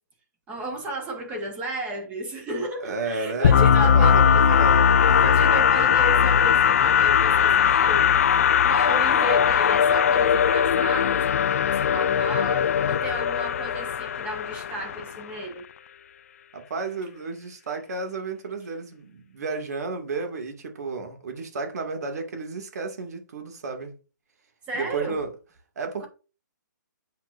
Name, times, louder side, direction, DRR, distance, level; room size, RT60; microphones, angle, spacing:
voice 1, 0.5-4.4 5.0-8.1 8.7-15.6 24.7-25.2, right 1 dB, 10° right, 1.4 m, -33 dB
voice 2, 2.8-5.2 16.5-23.9 24.7-25.3 25.8-26.1, right 4 dB, 55° right, 2.3 m, -32 dB
sound 1, 3.4-15.2, left 8 dB, 45° left, 0.4 m, -19 dB
8.0 x 6.6 x 2.6 m
hypercardioid pair, 170°, 10 cm